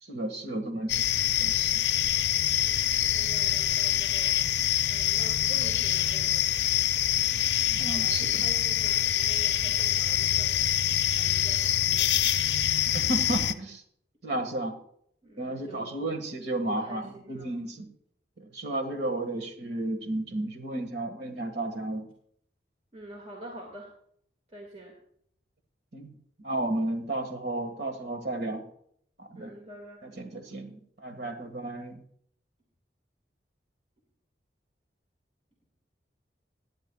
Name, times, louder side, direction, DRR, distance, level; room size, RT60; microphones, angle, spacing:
voice 1, 0.0-1.0 1.4-1.8 7.7-8.4 12.9-13.8 14.2-14.8 15.4-17.9 18.4-22.1 25.9-28.6 29.2-29.5 30.0-32.0, right 1 dB, 65° right, 5 dB, 1.6 m, -33 dB
sound 1, 0.9-13.5, left 11 dB, 75° left, 0.5 m, -25 dB
voice 2, 2.5-4.4 4.7-7.1 7.9-10.6 11.1-12.5 15.2-15.9 16.7-17.5 22.9-23.9 24.5-24.9 29.3-30.2, right 1 dB, 35° right, 0 dB, 1.9 m, -47 dB
17.0 x 10.5 x 2.3 m, 0.66 s
head